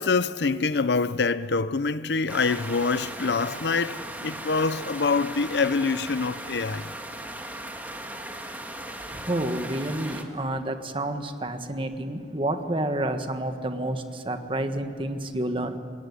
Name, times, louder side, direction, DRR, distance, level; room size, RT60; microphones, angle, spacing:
voice 1, 0.0-6.9, left 4 dB, 70° left, 0.6 m, -25 dB
sound 1, 2.3-10.2, right 1 dB, 10° right, 1.9 m, -37 dB
voice 2, 9.3-15.8, right 1 dB, 30° right, 1.5 m, -29 dB
26.0 x 21.0 x 9.6 m
head